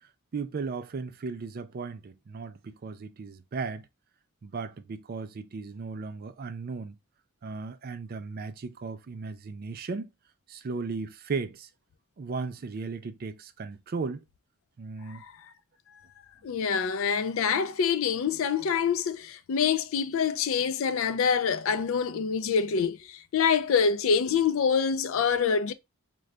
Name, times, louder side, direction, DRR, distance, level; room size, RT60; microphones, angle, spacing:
voice 1, 0.3-3.9 4.4-7.0 7.4-10.1 10.5-11.7 12.2-14.2 14.8-15.2, right 4 dB, 40° right, 0.4 m, -36 dB
voice 2, 16.4-25.7, left 6 dB, 60° left, 0.4 m, -26 dB
3.7 x 2.3 x 3.2 m
head